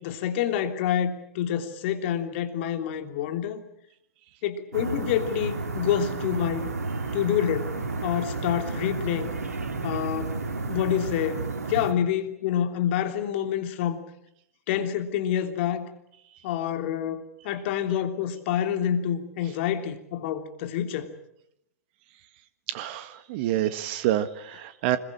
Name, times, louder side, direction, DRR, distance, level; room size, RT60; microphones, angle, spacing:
voice 1, 0.0-3.6 4.4-6.7 7.1-7.7 8.0-9.3 9.8-10.4 10.7-14.0 14.7-15.9 16.4-21.1, left 10 dB, 45° left, 6 dB, 3.2 m, -27 dB
sound 1, 4.7-11.9, right 3 dB, 75° right, 3.1 m, -32 dB
voice 2, 22.7-25.0, right 12 dB, 45° right, 12 dB, 1.7 m, -27 dB
26.0 x 22.0 x 8.8 m, 0.79 s
figure-of-eight pair, 105°, 9 cm